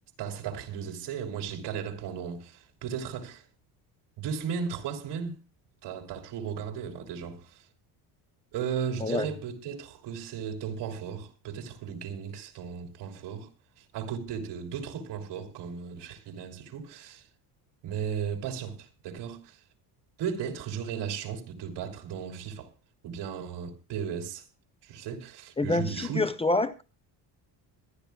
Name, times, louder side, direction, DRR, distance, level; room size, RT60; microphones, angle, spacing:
voice 1, 0.2-3.4 4.2-5.4 5.8-7.6 8.5-13.5 13.8-17.3 17.8-19.6 20.2-22.7 23.0-24.4 24.8-26.2, right 7 dB, 70° right, 3.1 m, -35 dB
voice 2, 25.6-26.8, left 2 dB, 15° left, 0.7 m, -27 dB
25.5 x 11.5 x 2.3 m
cardioid pair, 130°, 43 cm